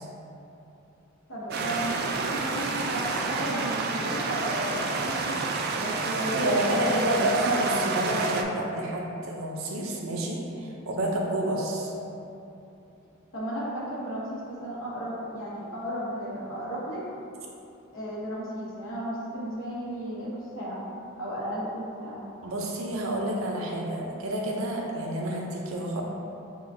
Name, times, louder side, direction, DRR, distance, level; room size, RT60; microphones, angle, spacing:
voice 1, 1.3-5.4 5.8-7.3 13.3-17.0 17.9-20.8 21.2-22.2, equal, 70° left, -7 dB, 1.2 m, -34 dB
sound 1, 1.5-8.4, right 4 dB, 50° right, 0.3 m, -29 dB
voice 2, 6.1-11.9 22.4-26.0, right 1 dB, 85° right, -1 dB, 0.6 m, -29 dB
6.6 x 2.4 x 2.7 m, 2.8 s
head